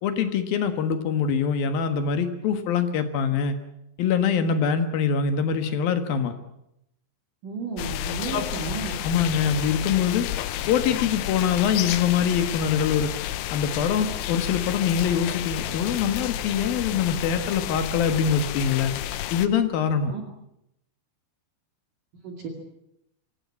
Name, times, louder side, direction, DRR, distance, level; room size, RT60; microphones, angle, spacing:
voice 1, 0.0-3.6 4.0-6.3 8.3-8.4 9.0-10.3 10.7-13.1 13.5-18.9 19.3-20.1, left 7 dB, 60° left, 9 dB, 2.8 m, -24 dB
voice 2, 7.4-9.0 20.1-20.2 22.2-22.5, right 4 dB, 50° right, 3 dB, 3.6 m, -33 dB
sound 1, 7.8-19.5, left 13 dB, 90° left, 3.6 m, -31 dB
25.5 x 17.0 x 8.5 m, 0.82 s
omnidirectional pair, 5.5 m